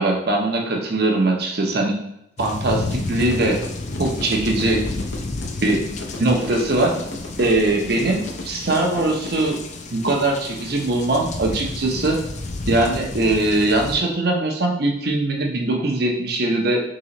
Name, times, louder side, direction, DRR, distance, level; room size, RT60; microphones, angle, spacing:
voice 1, 0.0-2.0 2.4-3.6 4.0-4.9 5.6-5.9 6.2-6.9 7.4-9.6 9.9-12.2 12.7-16.8, right 2 dB, 55° right, 1 dB, 0.7 m, -21 dB
sound 1, 2.4-14.0, left 2 dB, 40° left, 0.4 m, -31 dB
sound 2, 3.3-9.5, left 2 dB, 80° left, 0.6 m, -34 dB
3.8 x 3.0 x 2.9 m, 0.79 s
head